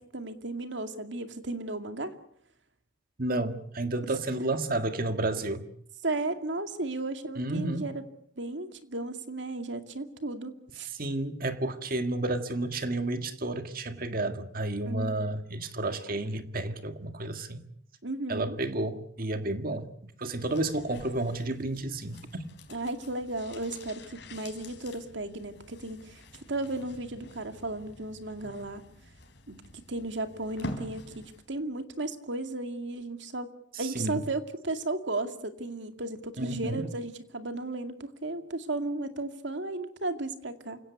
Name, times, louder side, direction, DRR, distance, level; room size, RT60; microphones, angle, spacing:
voice 1, 0.0-2.1 6.0-7.9 8.4-10.9 14.8-15.1 18.0-18.6 22.7-26.2 26.5-28.8 29.5-33.5 33.8-40.8, right 2 dB, 70° right, 2.4 m, -35 dB
voice 2, 3.2-5.7 7.4-7.9 10.9-17.7 18.3-22.5 33.7-34.2 36.4-36.8, right 2 dB, 50° right, 1.8 m, -31 dB
sound 1, 20.3-31.5 31.8-31.9, left 1 dB, 60° left, 4.6 m, -46 dB
28.5 x 17.0 x 8.2 m
head